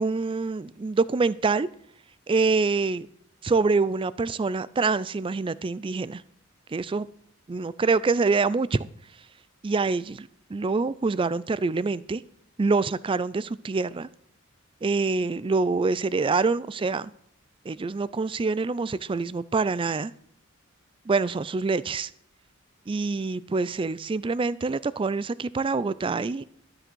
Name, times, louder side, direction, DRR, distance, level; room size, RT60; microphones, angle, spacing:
voice 1, 0.0-1.7 2.3-3.1 3.4-6.2 6.7-7.1 7.5-8.8 9.6-12.2 12.6-14.1 14.8-17.1 17.7-20.1 21.1-22.1 22.9-26.4, right 4 dB, 25° right, 18 dB, 0.3 m, -25 dB
12.5 x 7.8 x 6.2 m, 0.67 s
head